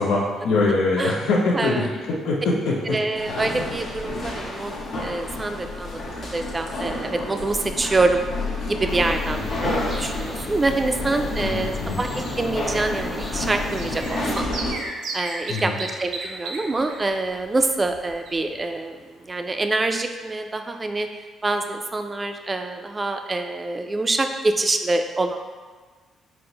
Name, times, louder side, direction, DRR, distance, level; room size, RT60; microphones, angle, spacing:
voice 1, 0.0-3.0 9.3-9.6 11.4-12.0 15.5-15.8, left 2 dB, 80° left, -2 dB, 0.5 m, -23 dB
voice 2, 1.5-1.9 2.9-8.2 8.7-14.5 15.1-21.1 21.4-25.4, right 2 dB, 25° right, 6 dB, 0.3 m, -26 dB
sound 1, 3.1-14.7, left 2 dB, 60° left, 0.9 m, -30 dB
sound 2, 8.9-14.4, left 1 dB, 25° left, 0.7 m, -37 dB
sound 3, 13.7-18.7 19.0-19.1 19.4-19.5, right 2 dB, 85° right, 0.6 m, -35 dB
4.3 x 2.0 x 3.8 m, 1.4 s
cardioid pair, 85°, 0 cm